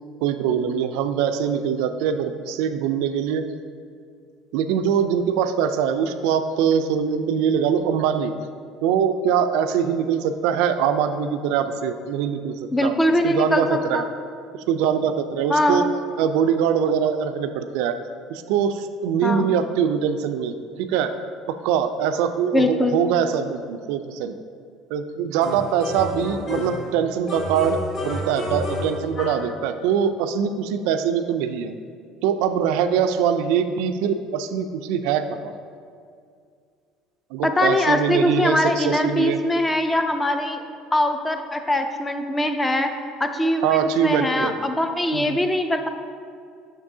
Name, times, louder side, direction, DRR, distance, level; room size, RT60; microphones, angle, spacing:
voice 1, 0.2-3.4 4.5-8.3 8.8-12.9 13.2-14.0 14.5-15.8 16.2-18.0 18.3-21.1 21.5-24.3 24.9-31.8 32.2-35.5 37.3-39.4 43.6-44.6 45.1-45.4, right 7 dB, 80° right, 9 dB, 0.3 m, -23 dB
voice 2, 12.7-14.1 15.5-15.9 19.2-19.6 22.5-23.0 37.4-40.6 40.9-42.9 43.2-45.9, left 1 dB, 10° left, 6 dB, 0.3 m, -22 dB
sound 1, 25.4-26.9 27.3-29.5, left 1 dB, 35° left, 1.0 m, -30 dB
6.5 x 6.0 x 2.7 m, 2.2 s
cardioid pair, 155°, 0 cm